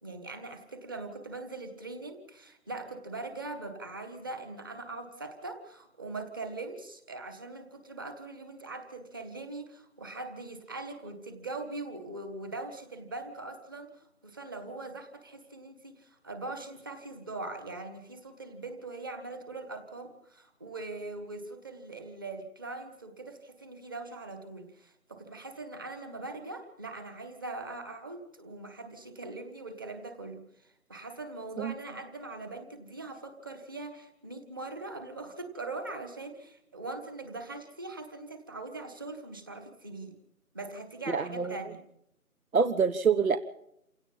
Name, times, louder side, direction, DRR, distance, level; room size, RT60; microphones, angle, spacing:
voice 1, 0.0-40.1 40.5-41.8, right 2 dB, 15° right, 7 dB, 1.6 m, -41 dB
voice 2, 41.1-41.5 42.5-43.4, right 5 dB, 65° right, 11 dB, 1.4 m, -25 dB
29.0 x 17.0 x 5.6 m, 0.76 s
figure-of-eight pair, 170°, 45 cm